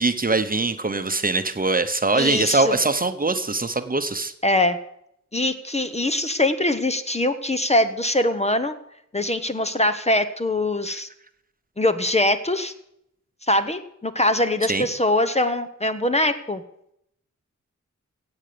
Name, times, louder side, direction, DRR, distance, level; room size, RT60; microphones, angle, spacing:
voice 1, 0.0-4.3 10.9-11.0 14.7-14.9, right 3 dB, 30° right, 9 dB, 0.9 m, -22 dB
voice 2, 2.1-2.8 4.4-4.8 5.3-8.8 9.1-11.1 11.8-12.7 13.5-16.6, left 1 dB, 20° left, 10 dB, 0.8 m, -22 dB
16.5 x 7.9 x 6.9 m, 0.76 s
wide cardioid pair, 105°, 29 cm